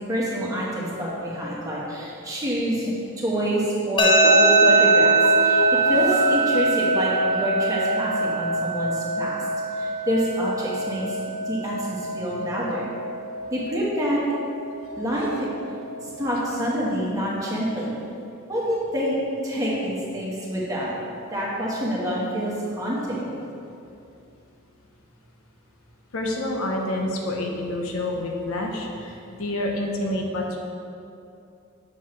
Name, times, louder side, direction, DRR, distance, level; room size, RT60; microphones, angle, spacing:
voice 1, 0.1-5.1 5.4-9.4 9.7-11.2 11.4-12.9 13.5-14.2 14.9-15.5 16.0-17.9 18.5-19.2 19.4-20.9 21.3-23.4, equal, 15° right, -6 dB, 1.4 m, -27 dB
sound 1, 4.0-17.0, right 2 dB, 25° left, 0.5 m, -23 dB
sound 2, 4.1-7.5 7.8-7.9, right 1 dB, 65° right, 1.1 m, -32 dB
voice 2, 26.1-30.6, left 1 dB, 85° left, 0 dB, 0.9 m, -28 dB
7.2 x 6.8 x 3.2 m, 2.6 s
head